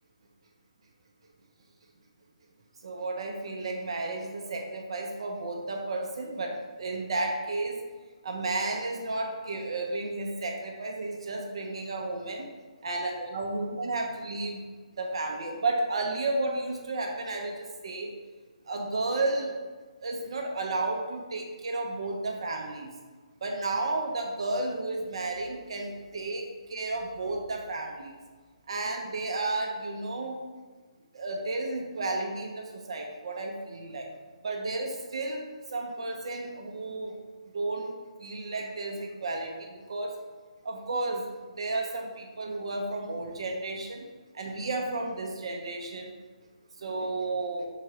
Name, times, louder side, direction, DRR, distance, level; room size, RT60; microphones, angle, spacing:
voice 1, 2.8-7.8 8.2-12.5 12.8-14.6 15.0-18.1 18.7-19.5 20.0-22.9 23.4-28.2 28.7-30.4 31.1-34.1 34.4-37.1 37.5-37.9 38.2-40.2 40.6-44.1 44.3-46.1 46.8-47.7, right 2 dB, 45° right, 2 dB, 0.5 m, -32 dB
3.7 x 3.0 x 4.7 m, 1.4 s
hypercardioid pair, 175°, 4 cm